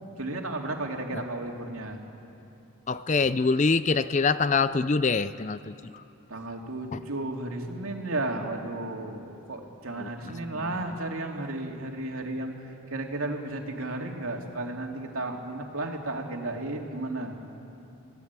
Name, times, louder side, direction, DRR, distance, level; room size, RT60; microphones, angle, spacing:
voice 1, 0.2-2.0 6.3-17.4, right 2 dB, 80° right, 1 dB, 2.6 m, -33 dB
voice 2, 2.9-5.7 6.9-7.0 10.0-10.1, left 4 dB, 35° left, 14 dB, 0.4 m, -24 dB
26.5 x 17.5 x 8.3 m, 2.8 s
head